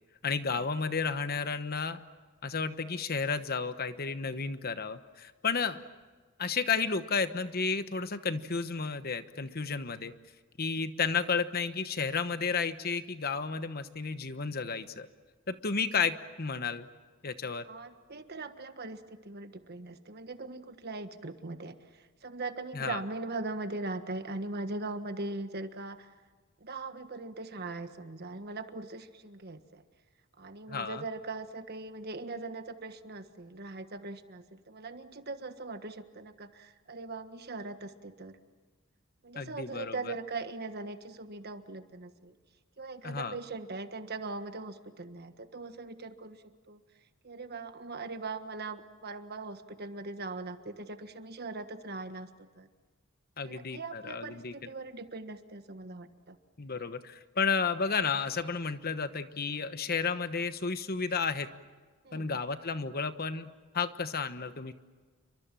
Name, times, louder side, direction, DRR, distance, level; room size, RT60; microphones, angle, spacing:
voice 1, 0.2-2.0 2.4-5.8 6.4-10.1 10.6-15.1 15.5-16.9 17.2-17.7 22.7-23.0 30.7-31.0 39.3-40.0 43.0-43.3 53.4-54.5 56.6-61.5 62.1-64.7, left 5 dB, 45° left, 11 dB, 1.1 m, -32 dB
voice 2, 17.7-26.1 26.6-29.8 30.4-38.4 39.2-42.4 42.8-46.8 47.2-52.3 52.6-52.7 53.5-56.4 62.0-62.4, right 3 dB, 50° right, 9 dB, 1.5 m, -40 dB
29.5 x 24.0 x 7.6 m, 1.4 s
head